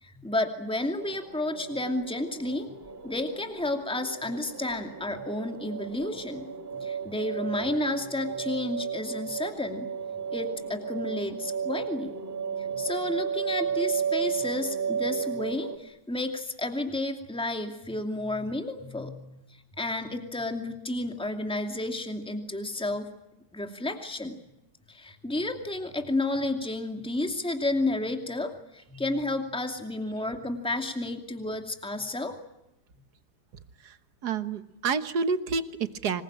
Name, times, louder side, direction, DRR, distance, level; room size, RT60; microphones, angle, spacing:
voice 1, 0.0-2.7 3.0-6.5 6.7-9.9 10.3-12.2 12.6-23.1 23.5-24.4 24.9-32.4, left 2 dB, 5° left, 5 dB, 2.4 m, -31 dB
sound 1, 1.0-15.8, right 7 dB, 40° right, 2.2 m, -34 dB
voice 2, 33.8-36.2, right 5 dB, 85° right, 11 dB, 1.9 m, -29 dB
26.5 x 22.0 x 8.9 m, 0.89 s
omnidirectional pair, 1.7 m